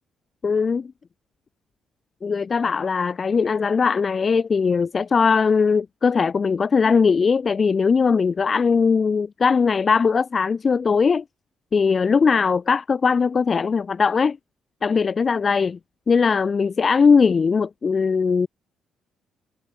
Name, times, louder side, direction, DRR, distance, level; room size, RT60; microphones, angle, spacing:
voice 1, 0.4-0.9 2.2-11.2 11.7-14.4 14.8-15.8 16.1-18.5, left 5 dB, 30° left, 7.0 m, -20 dB
cardioid pair, 145°, 0 cm